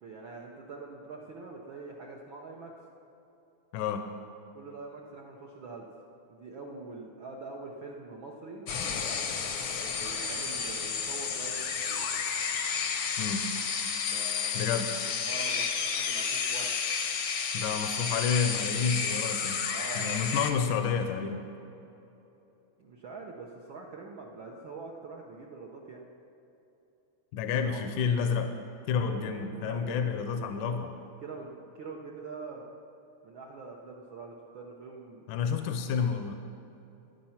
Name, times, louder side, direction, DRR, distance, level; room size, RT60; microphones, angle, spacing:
voice 1, 0.0-2.7 4.5-5.9 6.3-8.6 9.7-12.1 14.1-16.7 19.7-20.3 22.8-26.0 27.6-27.8 29.1-30.8 31.2-32.6 33.2-35.2, right 4 dB, 70° right, -1 dB, 1.1 m, -44 dB
voice 2, 3.7-4.1 13.2-13.5 14.6-14.9 17.5-19.6 20.0-21.4 27.3-28.5 28.9-30.9 35.3-36.4, left 6 dB, 85° left, 7 dB, 2.3 m, -29 dB
sound 1, 8.7-20.5, left 6 dB, 70° left, 1.1 m, -31 dB
13.5 x 10.5 x 5.7 m, 2.9 s
omnidirectional pair, 3.5 m